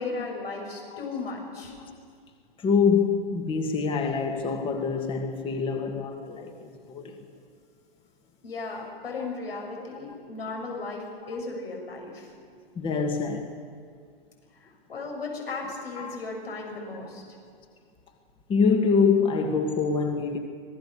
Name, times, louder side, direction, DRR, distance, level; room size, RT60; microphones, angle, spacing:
voice 1, 0.0-1.7 8.4-12.3 14.5-17.2, left 3 dB, 80° left, 7.3 m, -36 dB
voice 2, 2.6-7.2 9.2-9.3 10.1-10.2 11.3-11.4 12.7-13.6 15.6-16.2 16.7-16.8 18.5-20.4, left 5 dB, 15° left, 1.6 m, -26 dB
26.0 x 18.5 x 6.8 m
hypercardioid pair, 125°, 30 cm